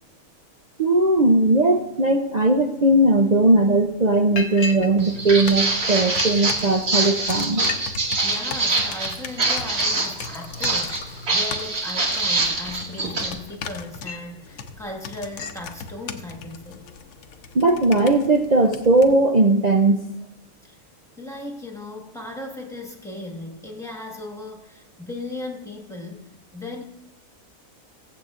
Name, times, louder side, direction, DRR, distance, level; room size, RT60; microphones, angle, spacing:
voice 1, 0.8-7.6 17.5-20.0, right 2 dB, 55° right, 4 dB, 0.4 m, -18 dB
Liquid, 4.4-4.9 5.3-6.2 6.8-6.9 7.2-7.3 7.5-7.8 8.1-8.5 9.0-12.8 13.4-14.4 14.8-14.9 15.2-15.6, left 3 dB, 50° left, 1.0 m, -37 dB
Walk footsteps, 5.0-13.3, right 3 dB, 75° right, 2.5 m, -24 dB
sound 1, 5.4-19.1, left 6 dB, 75° left, 1.2 m, -39 dB
voice 2, 8.2-16.9 20.6-20.8 21.2-26.8, left 2 dB, ahead, 0 dB, 1.5 m, -37 dB
22.5 x 7.7 x 2.5 m, 0.96 s
omnidirectional pair, 1.6 m